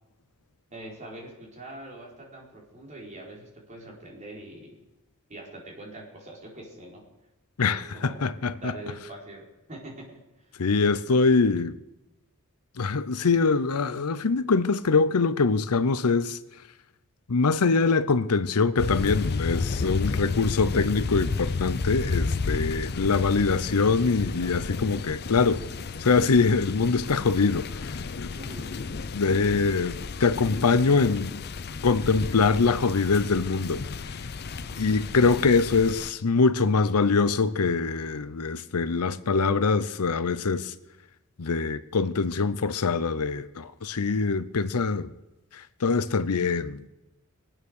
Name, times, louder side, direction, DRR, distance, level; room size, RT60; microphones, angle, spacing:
voice 1, 0.7-4.8 5.3-7.0 7.6-10.2 11.0-11.2 28.3-28.7 34.6-34.9, right 2 dB, 35° right, 4.4 m, -43 dB
voice 2, 7.6-8.7 10.6-11.7 12.8-16.4 17.3-25.6 26.0-28.3 29.1-31.4 31.8-33.8 34.8-40.7 41.4-45.1 45.8-46.9, left 4 dB, 90° left, 0.7 m, -23 dB
sound 1, 18.8-36.1, left 4 dB, 45° left, 0.5 m, -32 dB
23.0 x 9.0 x 6.5 m
head